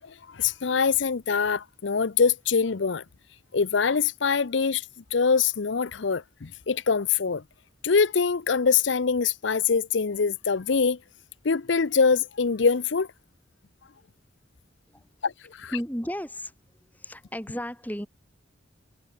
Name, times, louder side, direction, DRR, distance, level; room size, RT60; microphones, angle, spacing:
voice 1, 0.0-3.0 3.5-4.8 5.1-7.4 7.8-11.0 11.4-13.1 15.2-15.7, left 5 dB, 75° left, 0.7 m, -24 dB
voice 2, 15.7-16.5 16.9-18.1, equal, 10° left, 6.0 m, -33 dB
head